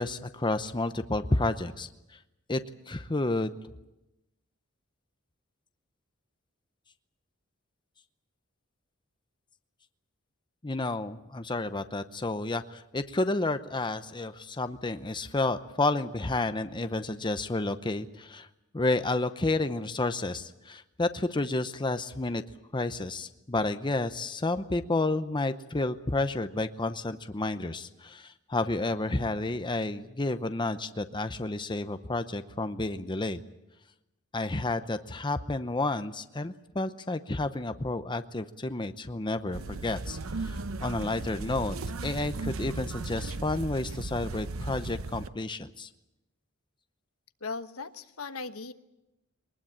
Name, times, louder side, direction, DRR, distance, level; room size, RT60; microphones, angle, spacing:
voice 1, 0.0-1.9 2.5-2.6 2.9-3.6 10.6-18.5 18.7-22.4 22.7-33.4 34.3-41.8 42.0-45.9, left 2 dB, 20° left, 9 dB, 0.8 m, -30 dB
sound 1, 39.5-45.3, right 3 dB, 70° right, 0.9 m, -36 dB
voice 2, 47.4-48.7, left 4 dB, 90° left, 10 dB, 1.2 m, -38 dB
22.5 x 20.0 x 8.7 m, 0.94 s
head